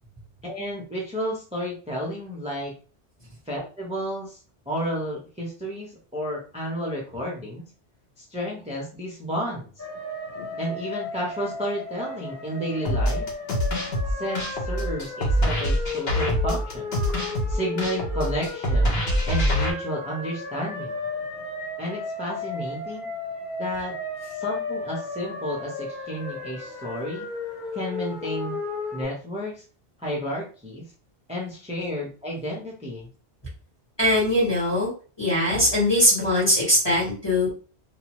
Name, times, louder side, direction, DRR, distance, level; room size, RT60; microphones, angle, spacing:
voice 1, 0.4-2.7 3.5-4.4 4.7-7.7 8.2-9.7 10.6-13.3 14.1-16.9 17.5-21.0 21.8-23.1 23.6-23.9 24.3-27.3 27.7-28.6 28.9-29.6 30.0-30.8 31.3-33.1, equal, 10° right, -3 dB, 0.6 m, -31 dB
sound 1, 9.8-29.0, left 3 dB, 50° left, 1.0 m, -34 dB
sound 2, 12.8-19.7, equal, 65° left, 1.1 m, -24 dB
voice 2, 34.0-34.9 35.2-37.5, left 1 dB, 25° left, -7 dB, 1.6 m, -21 dB
2.6 x 2.3 x 3.0 m, 0.38 s
omnidirectional pair, 1.1 m